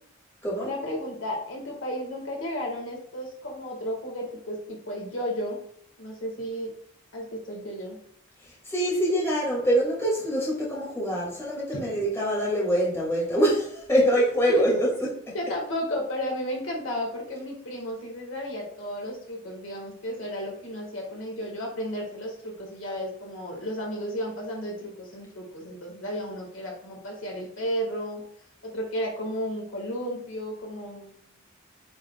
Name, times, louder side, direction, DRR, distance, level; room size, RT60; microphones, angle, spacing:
voice 1, 0.6-5.6 6.0-6.7 7.1-8.0 11.7-11.8 14.5-14.6 15.3-28.2 28.6-31.2, equal, 70° left, -1 dB, 1.9 m, -33 dB
voice 2, 8.7-15.1, equal, 15° left, -6 dB, 2.4 m, -24 dB
8.9 x 4.9 x 2.4 m, 0.63 s
head